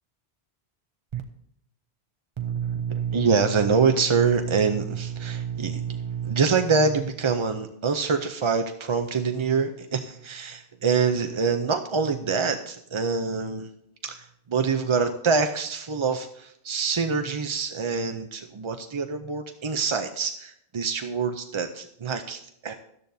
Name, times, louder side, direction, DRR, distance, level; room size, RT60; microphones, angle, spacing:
voice 1, 2.4-13.7 14.0-22.7, right 5 dB, 40° right, 6 dB, 0.4 m, -25 dB
17.0 x 12.5 x 2.7 m, 0.74 s
omnidirectional pair, 1.1 m